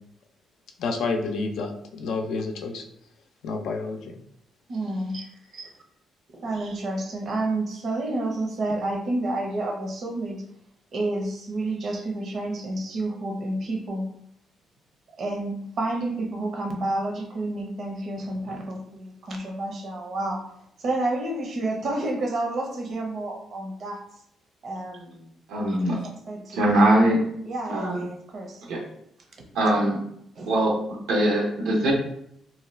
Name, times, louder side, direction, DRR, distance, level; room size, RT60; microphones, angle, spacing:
voice 1, 0.8-2.8 3.4-4.0, left 3 dB, 80° left, 3 dB, 0.4 m, -29 dB
voice 2, 4.7-5.7 6.4-10.4 10.9-14.1 15.1-20.4 20.8-24.0 24.6-25.3 25.7-25.8 26.3-26.7 27.4-28.6 30.4-30.6, right 2 dB, 60° right, 1 dB, 0.7 m, -30 dB
voice 3, 25.5-26.0 26.5-27.2 27.7-28.0 28.7-28.8 29.5-30.0 30.5-30.8 31.1-31.9, right 1 dB, 90° right, -1 dB, 0.9 m, -21 dB
2.8 x 2.3 x 3.2 m, 0.73 s
cardioid pair, 90°, 0 cm